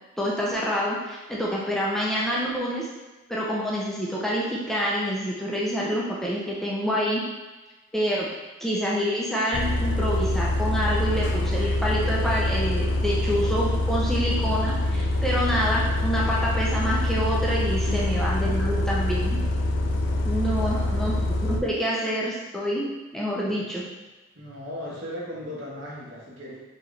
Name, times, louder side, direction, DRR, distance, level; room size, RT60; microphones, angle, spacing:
voice 1, 0.2-2.9 3.3-7.2 7.9-8.3 8.6-19.4 20.2-22.9 23.1-23.8, equal, ahead, -6 dB, 0.5 m, -27 dB
Bus, 9.5-21.6, left 1 dB, 70° left, 0.4 m, -25 dB
voice 2, 17.9-18.2 20.5-21.0 23.5-23.7 24.3-26.6, left 1 dB, 85° right, -6 dB, 1.4 m, -37 dB
4.5 x 3.0 x 3.3 m, 1.2 s
head